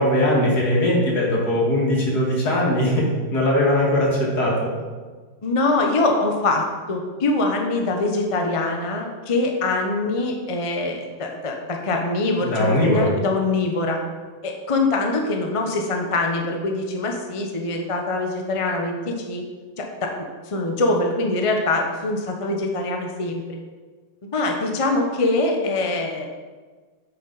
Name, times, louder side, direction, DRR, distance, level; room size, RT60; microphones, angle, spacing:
voice 1, 0.0-3.1 3.3-4.8 12.4-13.1, left 1 dB, 55° left, -3 dB, 2.4 m, -20 dB
voice 2, 5.4-14.0 14.4-19.4 19.8-20.1 20.5-23.4 24.2-26.3, left 2 dB, 35° left, 2 dB, 0.5 m, -23 dB
9.0 x 6.9 x 4.0 m, 1.4 s
omnidirectional pair, 2.1 m